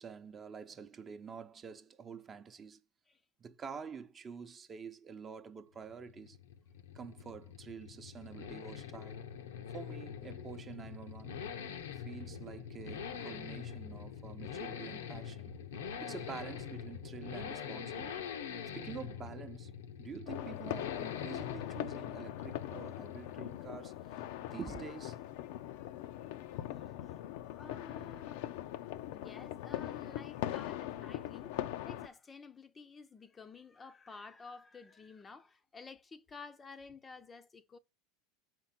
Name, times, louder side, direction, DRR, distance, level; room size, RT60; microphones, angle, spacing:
voice 1, 0.0-2.8 3.4-6.4 6.9-9.3 9.7-11.4 11.9-15.5 16.0-18.3 18.7-19.7 20.0-23.9 24.4-25.2, right 6 dB, 30° right, 0.7 m, -47 dB
sound 1, 5.8-23.8, left 7 dB, 90° left, 0.9 m, -44 dB
sound 2, 20.3-32.1, left 13 dB, 70° left, 0.5 m, -41 dB
voice 2, 26.7-28.6 29.1-37.8, left 4 dB, 20° left, 0.6 m, -52 dB
5.7 x 4.6 x 5.7 m
supercardioid pair, 110°, 0 cm